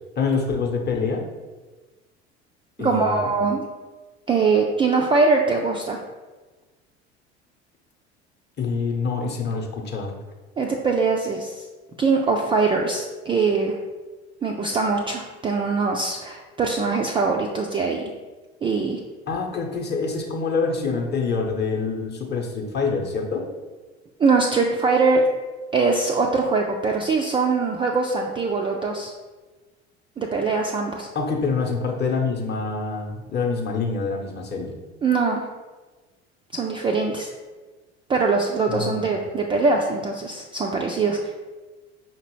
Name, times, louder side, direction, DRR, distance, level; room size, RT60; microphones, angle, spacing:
voice 1, 0.2-1.2 2.8-3.3 8.6-10.2 19.3-23.5 31.1-34.7 38.7-39.0, left 4 dB, 30° left, 1 dB, 0.8 m, -26 dB
voice 2, 2.8-3.7 4.3-6.0 10.6-11.6 12.0-13.8 14.4-18.0 18.6-19.0 24.2-25.2 25.7-29.1 30.2-31.1 35.0-35.4 36.5-37.3 38.1-41.2, right 4 dB, 15° right, 0 dB, 0.3 m, -22 dB
5.2 x 2.8 x 3.0 m, 1.3 s
figure-of-eight pair, 65°, 33 cm